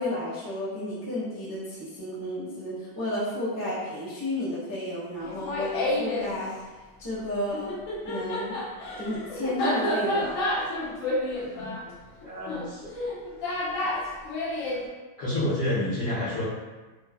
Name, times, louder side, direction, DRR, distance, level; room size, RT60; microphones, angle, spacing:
voice 1, 0.0-6.5 7.0-7.7 8.0-8.6 9.0-10.4, left 1 dB, 20° left, -10 dB, 0.6 m, -32 dB
Laughter, 5.2-6.3 7.5-14.8, left 1 dB, 85° left, 0.7 m, -30 dB
voice 2, 12.2-12.9 15.2-16.4, left 1 dB, 55° left, -11 dB, 0.9 m, -29 dB
3.1 x 2.1 x 2.2 m, 1.3 s
omnidirectional pair, 1.9 m